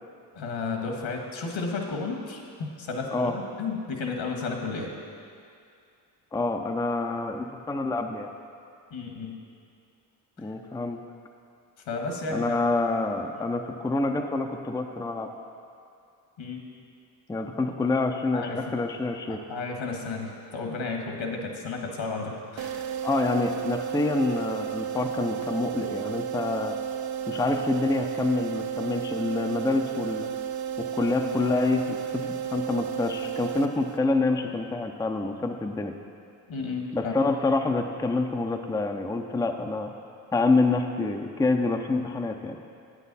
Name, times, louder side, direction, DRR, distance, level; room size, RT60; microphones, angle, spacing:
voice 1, 0.3-5.0 8.9-9.3 11.9-12.6 16.4-16.6 18.3-18.8 19.3-22.8 36.5-37.1, left 4 dB, 65° left, 2 dB, 1.6 m, -33 dB
voice 2, 6.3-8.3 10.4-11.0 12.3-15.3 17.3-19.4 23.0-26.8 27.3-30.3 30.8-36.0 36.9-39.9 40.3-42.6, left 3 dB, 10° left, 4 dB, 0.5 m, -27 dB
sound 1, 22.6-34.3, right 9 dB, 50° right, 0.6 m, -33 dB
9.2 x 8.3 x 4.1 m, 2.4 s
supercardioid pair, 55°, 49 cm